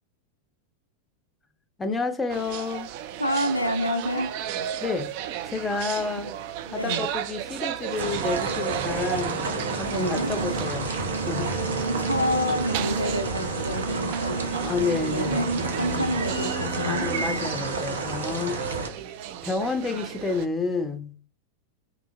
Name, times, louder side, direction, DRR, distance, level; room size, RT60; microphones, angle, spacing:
voice 1, 1.8-2.9 4.8-5.1 5.5-6.3 6.7-9.4 9.8-10.9 11.3-11.5 14.6-15.4 16.8-18.6 19.4-21.1, left 4 dB, 15° left, 0.5 m, -29 dB
sound 1, 2.3-20.5, right 11 dB, 45° right, 0.3 m, -35 dB
voice 2, 3.2-4.3 6.7-7.1 9.8-10.3 11.8-14.5 14.9-17.1, equal, 85° left, 0.4 m, -28 dB
sound 2, 8.0-18.9, right 3 dB, 65° right, 0.7 m, -29 dB
3.6 x 2.9 x 2.5 m
figure-of-eight pair, 90°, 0 cm